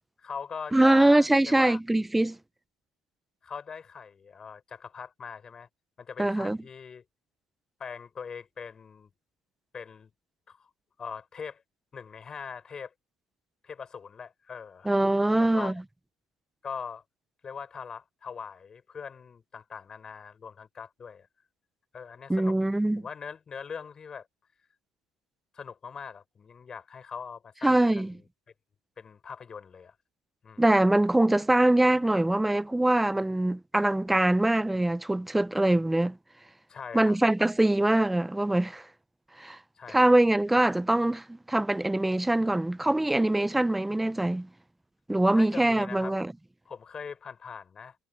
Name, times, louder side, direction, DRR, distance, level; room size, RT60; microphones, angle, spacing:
voice 1, 0.2-1.8 3.4-5.7 6.0-7.0 7.8-9.1 9.7-10.1 10.5-10.7 11.0-11.6 11.9-12.9 13.6-14.9 15.4-15.8 16.6-17.0 17.4-21.3 21.9-22.6 23.0-24.3 25.5-28.2 29.0-29.9 30.4-30.6 36.7-37.2 39.8-40.1 45.3-46.2 46.7-48.0, left 6 dB, 30° left, 5.8 m, -41 dB
voice 2, 0.7-2.4 6.2-6.6 14.9-15.7 22.3-23.0 27.6-28.1 30.6-36.2 36.9-38.8 39.4-39.6 39.9-44.5 45.1-46.3, right 1 dB, 5° right, 0.6 m, -23 dB
supercardioid pair, 110°, 2 cm